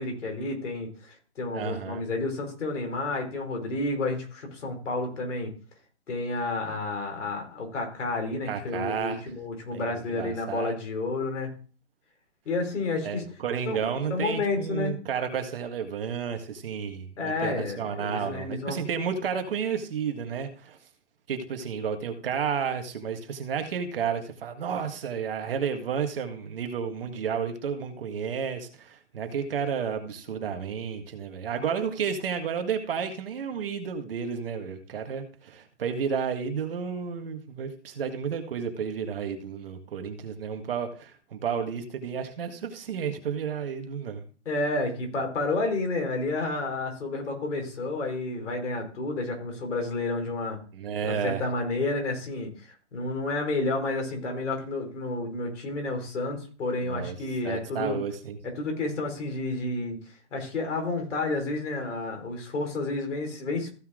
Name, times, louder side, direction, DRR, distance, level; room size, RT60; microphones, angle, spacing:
voice 1, 0.0-5.5 6.1-11.5 12.4-13.2 13.7-13.8 14.1-14.9 17.2-18.8 44.4-50.6 51.0-58.0 58.5-60.0 60.3-63.7, left 2 dB, 85° left, 3 dB, 4.7 m, -30 dB
voice 2, 1.5-2.1 8.5-9.2 9.7-10.7 13.0-20.8 21.3-44.2 50.7-51.4 56.8-57.2 57.4-58.4, right 7 dB, 50° right, 5 dB, 1.8 m, -32 dB
15.0 x 5.7 x 3.8 m, 0.38 s
hypercardioid pair, 175°, 35 cm